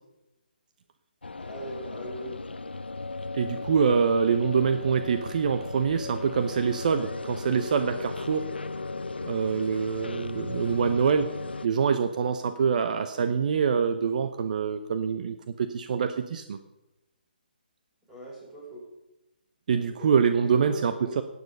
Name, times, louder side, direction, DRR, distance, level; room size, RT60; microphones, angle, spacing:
sound 1, 1.2-11.7, left 3 dB, 85° left, 0.7 m, -36 dB
voice 1, 1.4-2.4 18.1-18.9 19.8-20.1 20.4-21.2, right 1 dB, 5° right, -4 dB, 5.0 m, -40 dB
voice 2, 3.3-8.5 9.2-11.3 11.6-16.6 19.7-21.2, right 6 dB, 50° right, 9 dB, 0.8 m, -25 dB
15.0 x 9.7 x 5.4 m, 0.96 s
figure-of-eight pair, 145°, 5 cm